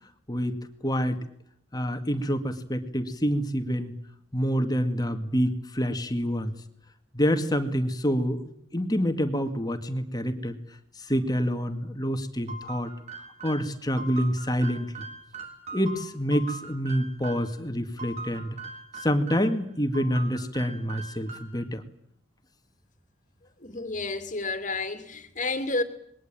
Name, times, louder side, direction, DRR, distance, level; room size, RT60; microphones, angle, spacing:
voice 1, 0.3-1.3 1.7-3.9 4.3-6.5 7.1-10.6 11.0-12.9 13.4-15.1 15.7-18.6 19.0-21.8, equal, 20° left, 2.2 m, -27 dB
sound 1, 12.5-17.6 18.0-19.6 19.9-21.7, right 3 dB, 35° right, 3.9 m, -41 dB
voice 2, 23.6-25.8, left 3 dB, 40° left, 2.7 m, -30 dB
27.5 x 22.0 x 8.9 m
head